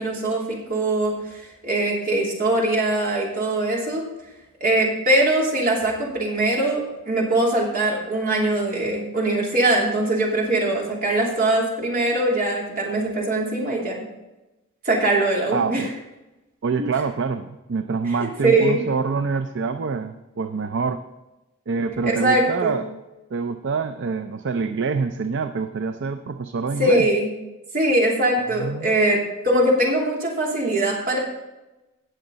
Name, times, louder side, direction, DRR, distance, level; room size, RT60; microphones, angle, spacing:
voice 1, 0.0-4.0 4.6-14.0 14.8-15.9 16.8-16.9 18.2-18.8 22.0-22.7 26.8-27.3 27.7-31.2, right 1 dB, 45° right, -2 dB, 3.0 m, -22 dB
voice 2, 15.5-15.9 16.6-21.0 21.7-22.9 23.3-27.1 28.4-28.9, right 4 dB, 60° right, 8 dB, 0.5 m, -26 dB
17.5 x 6.5 x 4.0 m, 1.0 s
head